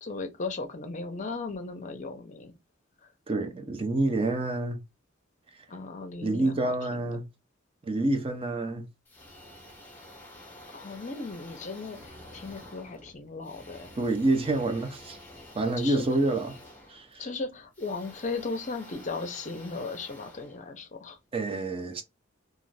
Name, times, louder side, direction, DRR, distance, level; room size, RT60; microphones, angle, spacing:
voice 1, 0.0-2.5 5.7-7.1 10.7-13.9 15.8-16.1 17.2-21.2, left 3 dB, 40° left, 0.6 m, -36 dB
voice 2, 3.3-4.8 6.2-7.2 7.8-8.9 14.0-15.2 15.5-16.6 16.9-17.3 21.3-22.0, right 2 dB, 30° right, 0.5 m, -27 dB
sound 1, 9.0-21.3, left 1 dB, 10° left, 0.8 m, -50 dB
2.5 x 2.3 x 3.2 m
head